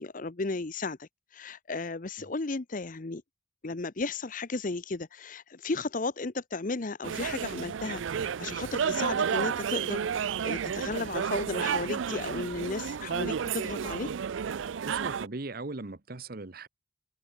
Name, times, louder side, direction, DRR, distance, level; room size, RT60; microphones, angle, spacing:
voice 1, 0.0-3.2 3.6-14.1, left 3 dB, 45° left, 0.8 m, -34 dB
sound 1, 7.0-15.3, right 7 dB, 80° right, 0.4 m, -31 dB
voice 2, 14.8-16.7, right 3 dB, 50° right, 1.0 m, -39 dB
head